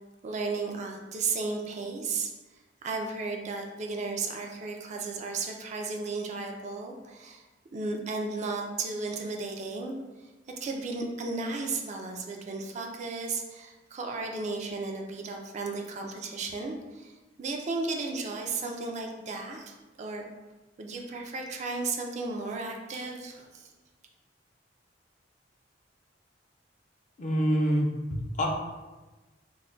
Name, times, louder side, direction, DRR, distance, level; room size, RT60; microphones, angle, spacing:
voice 1, 0.2-2.3 2.8-7.4 7.7-9.9 10.6-17.1 17.4-20.3 20.8-23.7, right 3 dB, 40° right, 2 dB, 0.3 m, -34 dB
voice 2, 27.2-28.5, equal, 45° left, 0 dB, 0.4 m, -26 dB
2.2 x 2.1 x 3.7 m, 1.2 s
head